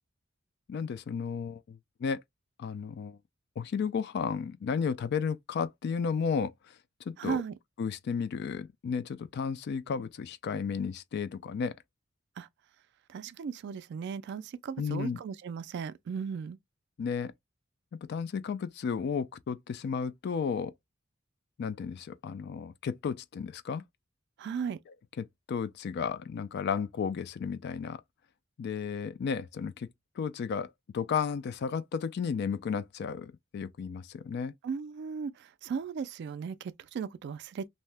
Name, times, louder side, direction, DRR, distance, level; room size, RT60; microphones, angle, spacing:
voice 1, 0.7-2.2 2.6-3.2 3.6-6.5 7.1-7.4 7.8-11.7 14.8-15.2 17.0-17.3 18.1-20.7 21.6-23.8 25.2-28.0 28.6-29.9 30.2-34.5, left 6 dB, 55° left, 0.3 m, -33 dB
voice 2, 7.2-7.5 12.4-12.5 13.1-16.6 24.4-24.8 34.6-37.7, right 6 dB, 55° right, 0.3 m, -36 dB
2.7 x 2.1 x 3.2 m
head